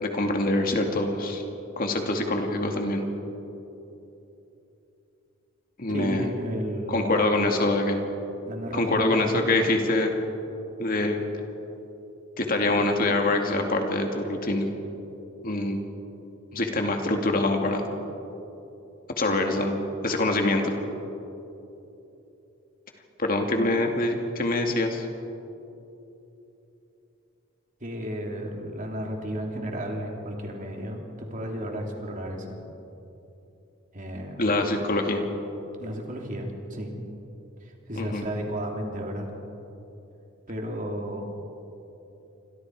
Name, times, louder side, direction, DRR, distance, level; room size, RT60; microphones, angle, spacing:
voice 1, 0.0-1.4 1.8-3.1 5.8-6.3 6.9-8.0 8.7-10.1 10.8-11.2 12.4-14.7 15.4-15.8 16.5-17.9 19.2-20.7 23.2-25.1 34.4-35.3 37.9-38.2, left 2 dB, 45° left, 3 dB, 2.3 m, -25 dB
voice 2, 5.9-7.2 8.5-9.5 27.8-32.6 33.9-34.4 35.8-37.0 37.6-39.3 40.5-41.3, equal, 40° right, 0 dB, 3.4 m, -33 dB
29.0 x 26.0 x 4.9 m, 3.0 s
head